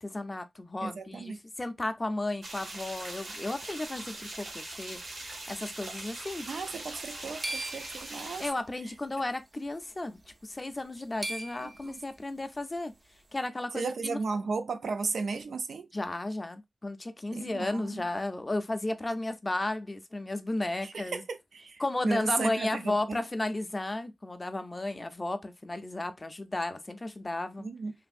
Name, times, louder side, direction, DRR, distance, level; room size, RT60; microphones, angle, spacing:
voice 1, 0.0-5.0 5.5-6.5 8.4-12.9 13.3-14.2 15.9-21.2 21.8-27.7, left 2 dB, 20° left, 0.4 m, -34 dB
voice 2, 0.8-1.4 6.5-8.4 11.6-12.0 13.7-15.9 17.3-18.1 20.8-23.2 27.6-27.9, right 4 dB, 85° right, 0.5 m, -35 dB
sound 1, 2.4-8.5, right 2 dB, 65° right, 1.1 m, -41 dB
sound 2, 7.0-8.7 9.7-9.9 10.3-10.4 10.8-12.0, right 2 dB, 30° right, 0.5 m, -39 dB
3.2 x 2.5 x 2.4 m
wide cardioid pair, 155°, 0 cm